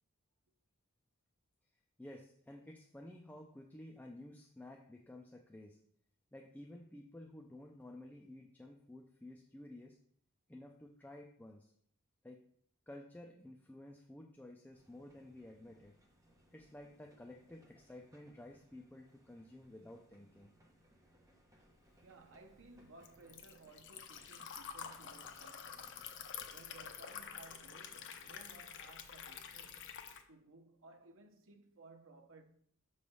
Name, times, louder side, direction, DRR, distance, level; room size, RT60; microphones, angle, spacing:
voice 1, 2.0-5.8 6.3-10.0 10.5-11.7 12.2-12.4 12.9-15.9 16.5-20.5, left 1 dB, 10° left, 0.4 m, -53 dB
sound 1, 14.7-28.4, equal, 15° right, 1.0 m, -68 dB
Liquid, 21.9-30.2, left 7 dB, 60° left, 0.7 m, -49 dB
voice 2, 22.0-26.1 26.5-32.4, right 3 dB, 60° right, 0.8 m, -59 dB
6.9 x 3.2 x 5.4 m
head